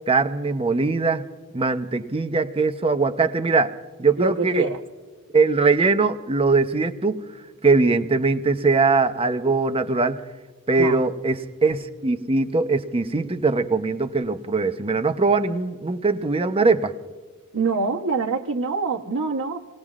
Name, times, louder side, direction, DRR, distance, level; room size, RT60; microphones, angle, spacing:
voice 1, 0.1-1.2 1.5-4.7 5.3-7.2 7.6-10.2 10.7-16.9, right 4 dB, 25° right, 0.7 m, -21 dB
voice 2, 4.2-4.8 10.7-11.0 17.5-19.6, right 3 dB, 70° right, 1.0 m, -25 dB
29.0 x 19.0 x 2.4 m
head